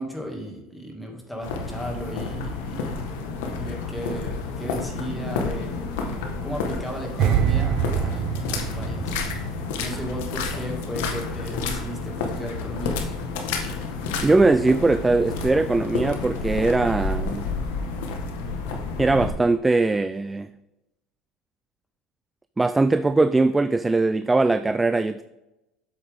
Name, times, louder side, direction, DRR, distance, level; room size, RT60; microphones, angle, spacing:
voice 1, 0.0-3.3 3.6-5.8 6.4-9.2 9.8-13.1, right 1 dB, 5° left, 2.3 m, -35 dB
sound 1, 1.4-19.3, left 4 dB, 85° left, 1.4 m, -30 dB
sound 2, 7.2-10.4 10.6-10.9, right 9 dB, 55° right, 0.8 m, -25 dB
voice 2, 14.2-17.5 19.0-20.5 22.6-25.2, right 3 dB, 15° right, 0.3 m, -20 dB
7.9 x 7.7 x 3.7 m
supercardioid pair, 110°, 0 cm